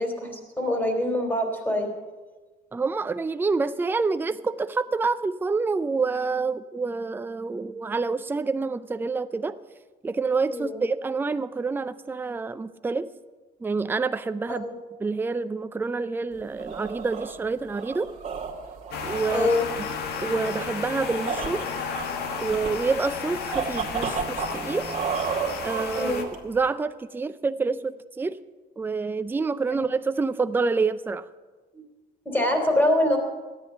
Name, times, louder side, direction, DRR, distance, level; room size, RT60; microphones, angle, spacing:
voice 1, 0.0-1.9 10.5-10.8 14.5-14.7 19.3-19.6 25.9-26.2 29.7-29.8 31.7-31.8 32.2-33.2, left 1 dB, 10° left, 3 dB, 3.2 m, -24 dB
voice 2, 2.7-9.6 10.0-13.1 13.6-14.7 15.0-18.1 19.0-19.5 19.8-19.9 20.2-21.6 22.4-24.9 25.6-28.4 28.8-31.3, right 4 dB, 10° right, 12 dB, 0.4 m, -27 dB
sound 1, 16.3-26.7, right 6 dB, 40° right, 2.2 m, -33 dB
sound 2, 18.9-26.2, left 6 dB, 75° left, 1.5 m, -33 dB
13.0 x 9.9 x 6.8 m, 1.3 s
cardioid pair, 110°, 17 cm